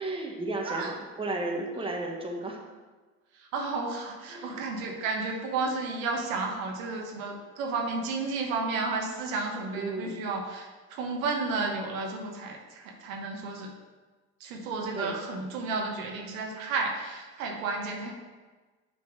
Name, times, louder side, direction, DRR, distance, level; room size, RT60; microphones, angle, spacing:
voice 1, 0.0-2.6 4.3-4.6 9.7-10.2 14.9-15.1, right 2 dB, 15° right, 0 dB, 1.4 m, -33 dB
voice 2, 3.3-13.7 14.4-18.1, right 3 dB, 80° right, 1 dB, 1.3 m, -32 dB
7.2 x 4.6 x 4.7 m, 1.3 s
hypercardioid pair, 80°, 40 cm